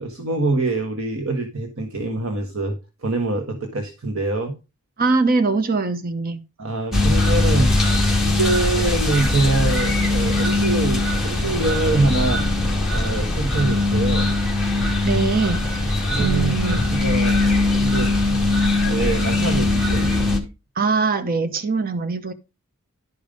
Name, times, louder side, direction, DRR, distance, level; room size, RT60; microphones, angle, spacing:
voice 1, 0.0-2.8 3.0-4.5 6.6-7.7 8.1-12.4 12.9-14.3 16.1-17.4 17.8-18.5 18.8-20.1, right 2 dB, 65° right, 4 dB, 1.5 m, -24 dB
voice 2, 5.0-6.4 15.0-16.9 20.8-22.3, right 4 dB, 40° right, 8 dB, 0.8 m, -22 dB
sound 1, 6.9-20.4, left 2 dB, ahead, 2.2 m, -20 dB
11.5 x 5.3 x 5.2 m, 0.28 s
head